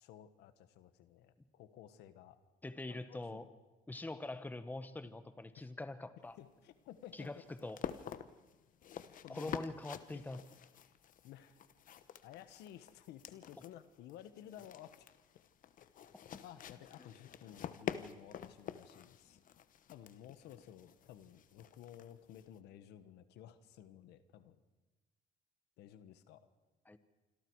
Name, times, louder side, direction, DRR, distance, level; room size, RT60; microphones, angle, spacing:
voice 1, 0.0-2.4 2.9-3.4 5.6-5.7 6.4-7.3 9.2-9.6 10.1-10.2 11.2-11.6 12.2-15.1 16.4-19.4 19.9-24.6 25.8-26.5, left 11 dB, 85° left, 12 dB, 1.4 m, -55 dB
voice 2, 2.6-3.5 3.9-6.4 7.1-7.8 9.3-10.4 26.8-27.0, left 2 dB, 10° left, 11 dB, 1.3 m, -44 dB
sound 1, 6.2-22.6, left 9 dB, 50° left, 1.0 m, -48 dB
26.5 x 25.5 x 4.8 m, 1.2 s
cardioid pair, 110°, 17 cm